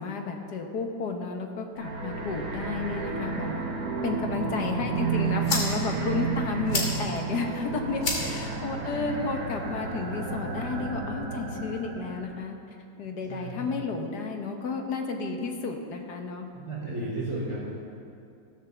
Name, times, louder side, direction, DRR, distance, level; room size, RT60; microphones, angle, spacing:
voice 1, 0.0-3.6 4.0-12.6 13.0-16.5 16.8-17.1, left 4 dB, 55° left, 3 dB, 1.6 m, -32 dB
sound 1, 1.7-12.4, right 5 dB, 50° right, 1.6 m, -32 dB
voice 2, 4.3-4.7 8.5-8.6 13.3-13.8 16.5-17.6, right 2 dB, 5° right, -6 dB, 3.5 m, -35 dB
sound 2, 4.8-10.8, left 3 dB, 75° left, 3.0 m, -36 dB
14.5 x 7.4 x 7.0 m, 2.5 s
omnidirectional pair, 2.2 m